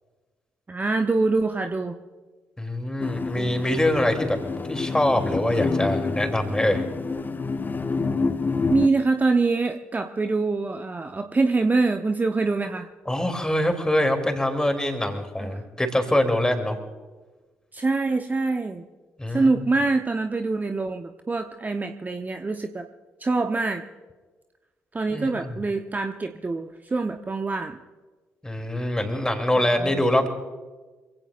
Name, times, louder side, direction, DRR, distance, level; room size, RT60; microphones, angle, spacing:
voice 1, 0.7-2.0 8.7-12.9 15.4-15.6 17.7-18.8 19.3-22.8 23.2-23.8 24.9-27.8 29.8-30.0, right 3 dB, 25° right, 6 dB, 0.9 m, -25 dB
voice 2, 2.6-4.4 4.7-6.8 13.1-16.8 19.2-19.6 25.1-25.5 28.4-30.3, left 1 dB, 10° left, 5 dB, 3.0 m, -24 dB
sound 1, 3.0-8.9, left 4 dB, 30° left, 1.0 m, -28 dB
26.5 x 16.5 x 2.5 m, 1.3 s
figure-of-eight pair, 40°, 7 cm